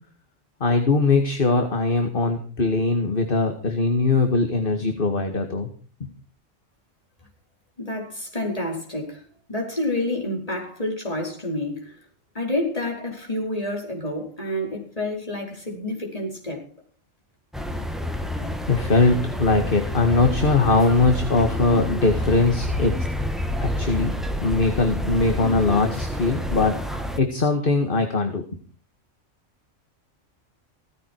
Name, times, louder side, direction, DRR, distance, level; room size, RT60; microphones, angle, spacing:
voice 1, 0.6-5.7 6.0-6.1 18.7-22.9 23.6-24.1 24.4-26.8 27.2-28.4, left 3 dB, 45° left, 2.1 m, -21 dB
voice 2, 7.8-12.0 12.4-16.6, left 1 dB, 30° left, 5.2 m, -29 dB
sound 1, 17.5-27.2, left 1 dB, ahead, 1.8 m, -28 dB
17.0 x 15.0 x 4.7 m
omnidirectional pair, 1.3 m